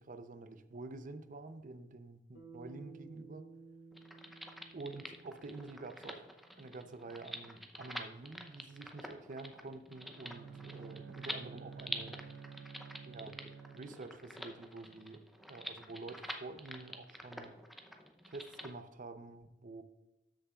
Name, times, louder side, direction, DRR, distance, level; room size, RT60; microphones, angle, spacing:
voice 1, 0.0-3.5 4.7-6.3 6.6-12.2 13.0-13.4 13.7-17.6 18.3-19.8, right 3 dB, 45° right, 10 dB, 0.6 m, -48 dB
Bass guitar, 2.3-6.8, right 4 dB, 80° left, 2.1 m, -56 dB
sound 1, 3.9-18.7, equal, ahead, 0.6 m, -47 dB
Bowed string instrument, 10.1-14.2, right 6 dB, 85° right, 0.5 m, -51 dB
13.0 x 6.8 x 2.4 m, 0.99 s
head